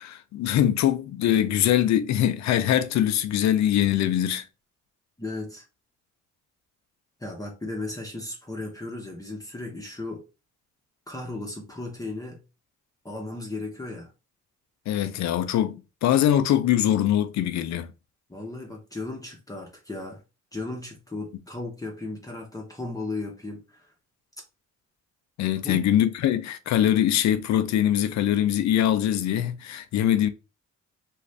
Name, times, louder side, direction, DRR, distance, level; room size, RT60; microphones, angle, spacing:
voice 1, 0.0-4.4 14.9-17.9 25.4-30.3, left 11 dB, 65° left, 0.5 m, -23 dB
voice 2, 5.2-5.6 7.2-10.2 11.1-12.4 13.0-14.1 18.3-20.2 20.5-23.9 25.6-25.8, left 2 dB, 10° left, 0.8 m, -35 dB
2.5 x 2.4 x 3.2 m
cardioid pair, 90°, 30 cm